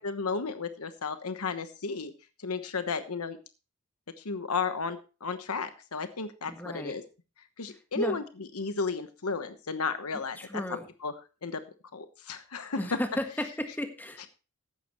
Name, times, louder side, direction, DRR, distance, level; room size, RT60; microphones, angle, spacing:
voice 1, 0.0-2.1 2.4-3.4 4.2-7.0 7.6-8.2 8.5-10.6 11.0-11.1 11.4-11.6 11.9-12.8, left 4 dB, 80° left, 10 dB, 1.1 m, -33 dB
voice 2, 6.4-7.0 7.9-8.2 10.4-10.9 12.8-14.3, left 1 dB, 10° left, 6 dB, 1.5 m, -34 dB
15.0 x 11.0 x 3.1 m, 0.33 s
head